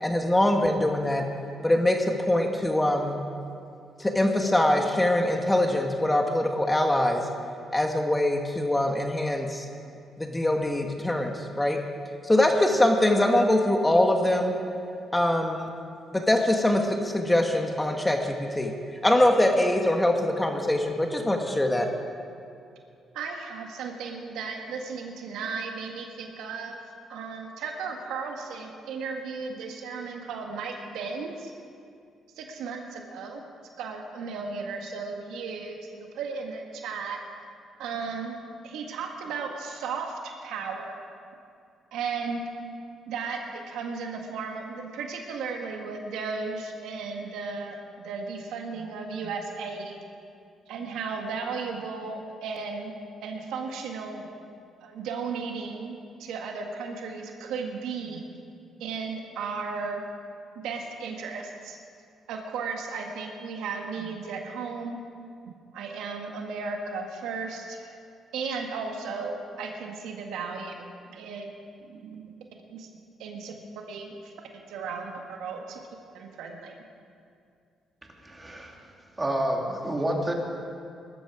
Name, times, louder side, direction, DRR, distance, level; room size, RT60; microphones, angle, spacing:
voice 1, 0.0-1.3 1.6-3.2 4.0-7.3 7.7-9.6 10.2-11.8 12.2-14.5 15.1-15.7 16.1-18.7 19.0-21.9, left 1 dB, 10° left, 3 dB, 1.5 m, -23 dB
voice 2, 23.1-26.8 27.1-31.5 32.4-33.4 33.8-37.2 37.8-38.3 38.6-41.0 41.9-42.4 43.1-50.0 50.7-52.9 53.2-54.3 54.8-58.3 58.8-60.0 60.6-61.8 62.3-65.0 65.7-68.0 68.3-70.7 71.1-71.5 71.9-72.3 72.7-72.9 73.2-73.5 73.9-74.3 74.7-75.1 75.4-75.8 76.1-76.8, right 5 dB, 90° right, 2 dB, 1.8 m, -35 dB
voice 3, 78.2-78.8 79.2-80.3, right 1 dB, 20° right, 0 dB, 2.9 m, -28 dB
19.5 x 13.0 x 4.9 m, 2.4 s
cardioid pair, 90°, 0 cm